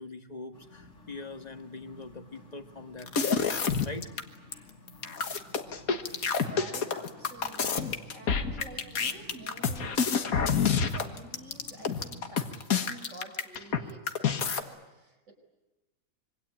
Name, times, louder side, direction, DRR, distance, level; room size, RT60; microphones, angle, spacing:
voice 1, 0.0-3.4 3.8-4.1, left 3 dB, 30° left, 6 dB, 1.7 m, -42 dB
sound 1, 0.5-12.6, left 2 dB, 60° left, 3.1 m, -53 dB
sound 2, 3.0-4.2 4.5-4.6 4.9-13.8 14.1-14.6, left 6 dB, 80° left, 1.9 m, -28 dB
voice 2, 6.4-15.3, right 2 dB, 60° right, 4 dB, 5.0 m, -49 dB
26.0 x 23.5 x 8.8 m, 1.1 s
omnidirectional pair, 1.5 m